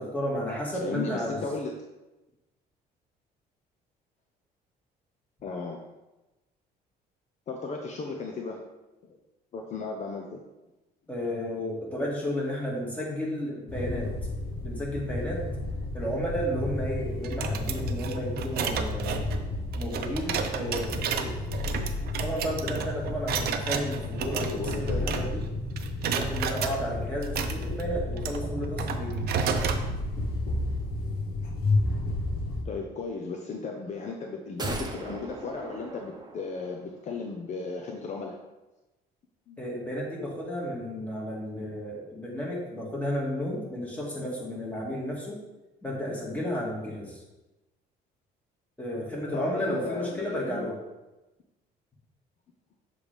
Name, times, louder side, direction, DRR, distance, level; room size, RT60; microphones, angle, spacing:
voice 1, 0.0-1.4 11.1-14.1 14.6-15.4 15.9-19.2 19.8-21.5 22.2-25.5 26.1-29.3 39.6-45.4 45.8-47.2 48.8-50.8, equal, 10° left, -4 dB, 2.0 m, -33 dB
voice 2, 0.8-1.7 5.4-5.8 7.5-8.6 9.1-9.2 9.5-10.4 24.3-25.2 32.7-38.4 39.5-39.6 49.3-50.7, left 4 dB, 45° left, 2 dB, 0.7 m, -35 dB
sound 1, 13.7-32.6, left 2 dB, 60° left, 1.2 m, -32 dB
sound 2, 17.2-25.5 25.8-26.8 27.2-29.8, right 7 dB, 65° right, 0.6 m, -32 dB
sound 3, 34.6-36.9 37.2-37.3, right 2 dB, 25° right, 0.9 m, -38 dB
7.0 x 3.3 x 5.1 m, 1.1 s
cardioid pair, 110°, 17 cm